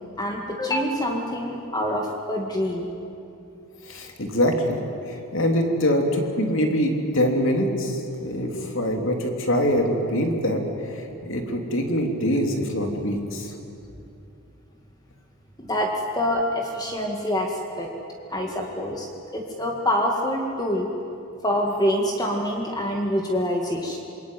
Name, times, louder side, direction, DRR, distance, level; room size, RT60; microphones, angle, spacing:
voice 1, 0.2-2.9 15.6-17.9 18.3-19.1 19.3-20.9 21.4-24.0, equal, 15° left, 1 dB, 2.0 m, -26 dB
voice 2, 3.9-4.8 5.1-13.5, equal, 60° left, 3 dB, 3.3 m, -24 dB
27.0 x 22.5 x 9.4 m, 2.7 s
head